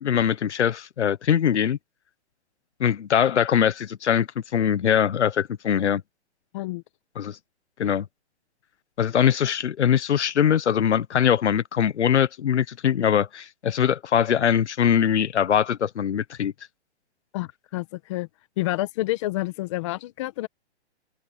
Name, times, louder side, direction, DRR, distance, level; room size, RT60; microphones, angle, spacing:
voice 1, 0.0-1.8 2.8-6.0 7.2-7.4 7.8-8.1 9.0-16.5, left 9 dB, 90° left, 1.2 m, -22 dB
voice 2, 17.3-18.3 18.6-20.5, left 17 dB, 25° left, 1.1 m, -29 dB
open air
hypercardioid pair, 165°, 34 cm